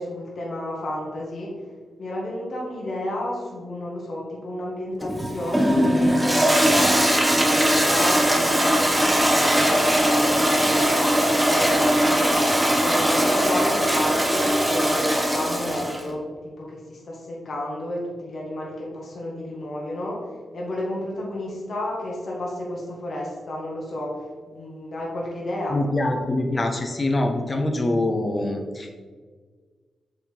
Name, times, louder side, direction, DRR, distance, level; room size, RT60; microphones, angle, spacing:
voice 1, 0.0-1.5 2.0-7.0 7.3-11.2 11.5-20.2 20.5-25.8, left 1 dB, 60° left, -4 dB, 1.7 m, -32 dB
Toilet flush, 5.0-16.1, equal, 15° right, 1.2 m, -20 dB
voice 2, 25.7-28.9, left 2 dB, 35° left, 3 dB, 1.1 m, -24 dB
7.0 x 3.6 x 4.6 m, 1.5 s
supercardioid pair, 50°, 0 cm